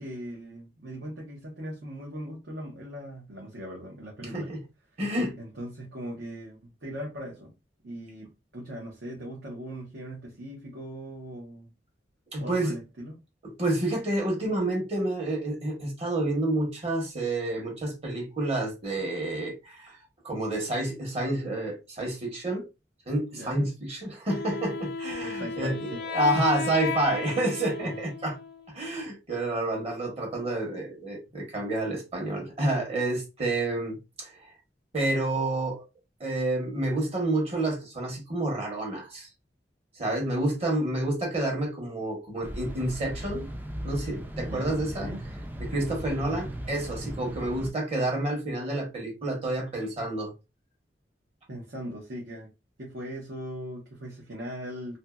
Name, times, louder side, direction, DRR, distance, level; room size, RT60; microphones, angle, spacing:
voice 1, 0.0-4.5 5.4-7.5 7.8-11.7 12.3-13.2 23.3-23.7 25.2-26.0 27.8-28.0 44.4-45.3 51.5-52.5 52.8-55.0, equal, 70° right, 0.9 m, -39 dB
voice 2, 4.2-4.6 5.0-5.4 12.3-12.8 13.4-20.0 20.2-22.6 23.1-28.4 28.7-34.3 34.9-35.8 36.2-39.3 40.0-43.5 43.8-45.1 45.6-50.3, right 1 dB, 35° right, 1.1 m, -29 dB
Wind instrument woodwind instrument, 24.3-29.1, left 4 dB, 65° left, 0.4 m, -34 dB
sound 1, 42.4-47.7, right 1 dB, 10° right, 0.3 m, -37 dB
2.7 x 2.7 x 2.3 m
head